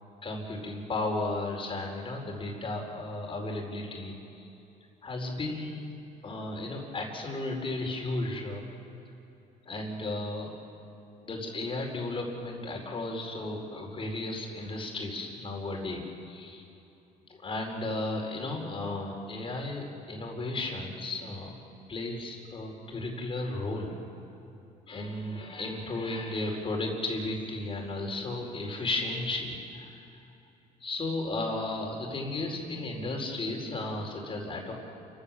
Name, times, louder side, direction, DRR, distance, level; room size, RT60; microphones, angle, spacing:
voice 1, 0.2-4.5 5.0-5.8 6.2-8.7 9.6-10.5 11.2-16.7 17.3-21.5 21.9-23.9 24.9-30.0 30.8-34.7, left 2 dB, 30° left, 1 dB, 4.7 m, -34 dB
29.5 x 15.5 x 7.4 m, 2.9 s
cardioid pair, 110°, 17 cm